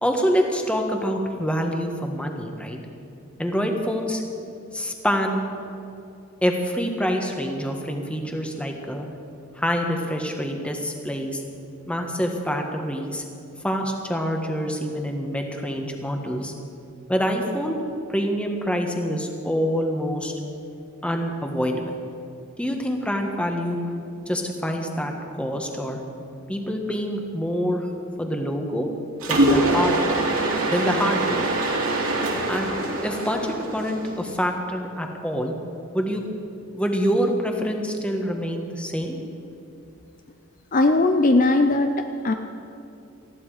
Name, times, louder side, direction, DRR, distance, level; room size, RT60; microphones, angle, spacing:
voice 1, 0.0-2.8 3.4-4.2 4.7-5.4 6.4-9.1 9.5-11.4 11.9-13.2 13.6-16.5 17.1-17.8 18.1-20.3 21.0-21.9 22.6-23.8 24.3-26.0 26.5-27.9 28.2-28.9 29.3-30.3 30.6-31.5 32.5-32.7 33.0-35.5 35.9-36.2 36.7-39.2, equal, 5° left, 2 dB, 1.4 m, -26 dB
Mechanisms, 29.2-34.3, right 2 dB, 85° right, 2.8 m, -23 dB
voice 2, 40.7-42.3, left 2 dB, 40° left, 6 dB, 0.6 m, -19 dB
19.5 x 14.5 x 4.9 m, 2.7 s
head